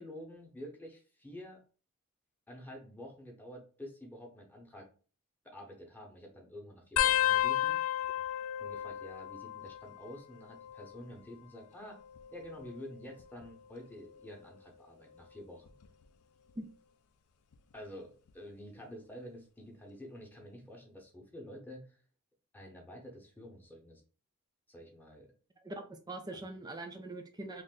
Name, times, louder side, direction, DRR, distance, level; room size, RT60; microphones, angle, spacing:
voice 1, 0.0-1.6 2.5-4.9 5.4-7.8 8.6-12.0 12.3-15.7 17.7-22.0 22.5-24.0 24.7-25.3 26.3-26.4, left 1 dB, 10° left, 0 dB, 0.8 m, -49 dB
sound 1, 7.0-10.1 10.4-11.0 12.0-13.5 14.1-14.4 15.7-16.0 17.5-17.6, left 12 dB, 65° left, 0.4 m, -33 dB
voice 2, 25.6-27.6, right 2 dB, 20° right, 6 dB, 0.4 m, -42 dB
3.2 x 2.6 x 3.7 m, 0.38 s
head